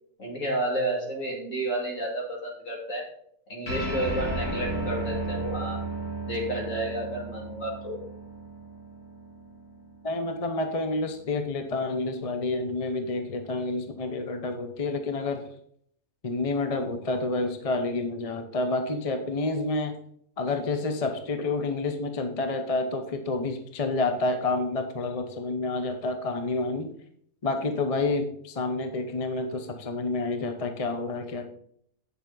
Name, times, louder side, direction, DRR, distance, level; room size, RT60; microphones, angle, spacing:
voice 1, 0.2-3.0 3.5-5.8 6.3-8.0, right 1 dB, 65° left, -1 dB, 2.9 m, -31 dB
sound 1, 3.7-10.4, right 2 dB, 90° left, 3.8 m, -34 dB
voice 2, 10.0-15.5 16.2-20.0 20.4-26.9 27.4-31.5, left 2 dB, 30° left, 6 dB, 0.7 m, -29 dB
8.7 x 7.0 x 3.9 m, 0.66 s
omnidirectional pair, 1.5 m